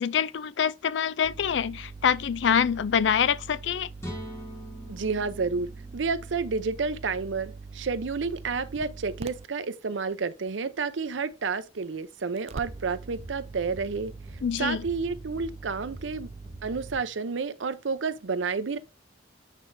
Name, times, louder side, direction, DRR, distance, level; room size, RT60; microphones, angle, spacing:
voice 1, 0.0-3.9 14.4-14.8, left 7 dB, 70° left, 0.4 m, -25 dB
sound 1, 1.2-9.5 12.4-17.0, right 4 dB, 35° right, 0.3 m, -43 dB
sound 2, 4.0-7.8, equal, 15° left, 2.0 m, -43 dB
voice 2, 4.9-14.1 14.6-16.3 16.6-18.8, right 4 dB, 80° right, 0.6 m, -30 dB
sound 3, 12.6-17.2, equal, 35° left, 1.8 m, -49 dB
8.4 x 4.5 x 2.6 m
head